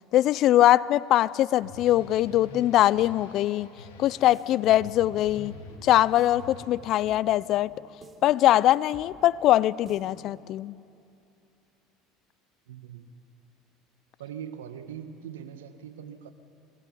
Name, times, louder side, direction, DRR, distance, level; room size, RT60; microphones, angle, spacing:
voice 1, 0.1-3.7 4.0-5.5 5.8-7.7 8.2-10.7, left 13 dB, 55° left, 21 dB, 0.5 m, -22 dB
sound 1, 1.6-6.7, left 3 dB, 80° left, 3.1 m, -45 dB
sound 2, 4.1-10.5, right 3 dB, 25° right, 3.2 m, -53 dB
voice 2, 12.7-13.0 14.2-16.3, right 9 dB, 85° right, 10 dB, 1.3 m, -41 dB
24.0 x 19.0 x 8.6 m, 2.6 s
hypercardioid pair, 75°, 0 cm